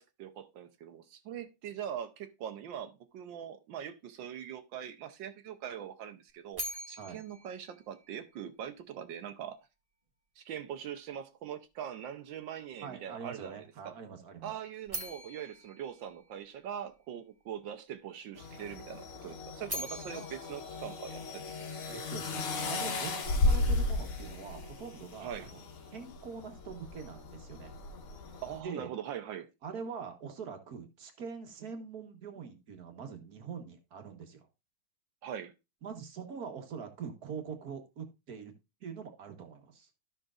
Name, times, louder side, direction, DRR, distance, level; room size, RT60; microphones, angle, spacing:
voice 1, 0.0-9.6 10.4-14.0 14.4-21.6 25.2-25.5 28.4-29.5 35.2-35.5, right 9 dB, 65° right, 1.4 m, -42 dB
sound 1, 6.5-8.7 14.9-17.0 19.4-21.8, equal, 20° right, 1.3 m, -43 dB
voice 2, 12.8-14.5 21.9-25.6 25.9-27.7 28.6-28.9 29.6-34.5 35.8-38.5 38.8-39.9, right 6 dB, 50° right, 1.6 m, -43 dB
sound 2, 18.4-28.6, left 2 dB, 85° left, 2.2 m, -35 dB
13.5 x 5.9 x 2.4 m
omnidirectional pair, 2.3 m